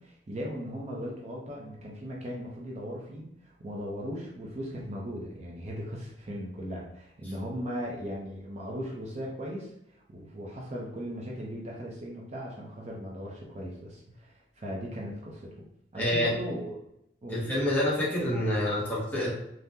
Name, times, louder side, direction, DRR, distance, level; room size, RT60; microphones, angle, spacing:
voice 1, 0.0-15.5 15.9-16.8 17.2-17.4, equal, 40° right, -3 dB, 0.6 m, -38 dB
voice 2, 15.9-16.3 17.3-19.3, left 1 dB, 10° left, -7 dB, 0.9 m, -27 dB
3.5 x 2.1 x 2.7 m, 0.80 s
head